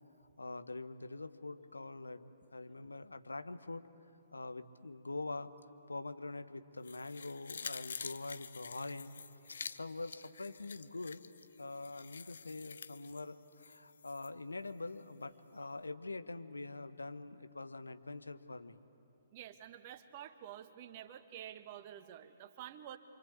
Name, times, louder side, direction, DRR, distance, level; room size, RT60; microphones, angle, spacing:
voice 1, 0.4-3.8 4.3-5.5 5.9-9.1 9.5-11.2 11.6-18.8, left 3 dB, 80° left, 10 dB, 1.2 m, -44 dB
sound 1, 6.8-14.3 14.7-14.8, left 6 dB, 65° left, 0.9 m, -48 dB
voice 2, 19.3-23.0, right 11 dB, 40° right, 8 dB, 1.6 m, -49 dB
27.5 x 25.5 x 8.5 m, 2.7 s
figure-of-eight pair, 125°, 0 cm